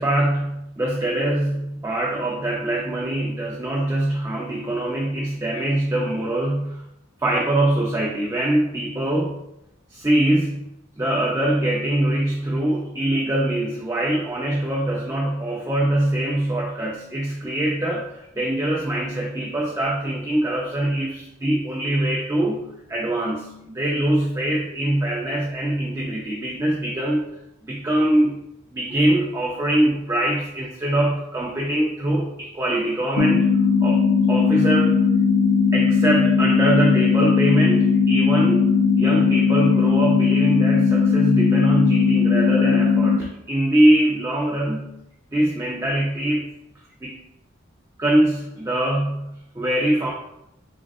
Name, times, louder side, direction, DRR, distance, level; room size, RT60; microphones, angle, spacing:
voice 1, 0.0-6.8 7.2-9.4 9.9-10.7 11.0-27.3 27.6-28.4 28.7-33.5 33.8-35.0 35.7-45.0 45.3-46.5 47.0-47.2 48.0-50.1, right 1 dB, 15° right, -3 dB, 0.3 m, -23 dB
sound 1, 33.2-43.2, left 5 dB, 75° left, 0.4 m, -18 dB
3.7 x 3.5 x 2.3 m, 0.82 s
head